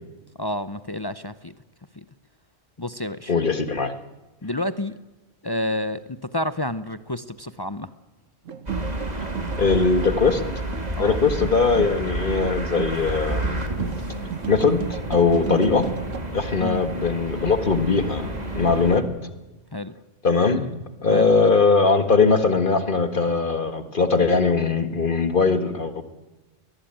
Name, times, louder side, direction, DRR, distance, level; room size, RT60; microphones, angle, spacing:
voice 1, 0.4-1.5 2.0-2.1 2.8-3.3 4.4-4.9 5.4-7.9 11.0-11.2 16.6-16.8 19.7-19.9 21.1-21.3, left 1 dB, 25° left, 13 dB, 0.6 m, -29 dB
voice 2, 3.3-3.9 9.6-10.4 11.0-13.6 14.5-15.9 16.3-19.0 20.2-20.7 21.0-26.0, left 4 dB, 45° left, 10 dB, 1.8 m, -20 dB
sound 1, 8.5-16.2, right 8 dB, 85° right, 1.5 m, -34 dB
sound 2, 8.7-19.0, right 1 dB, 35° right, 2.8 m, -31 dB
22.5 x 19.5 x 9.1 m, 1.1 s
omnidirectional pair, 1.3 m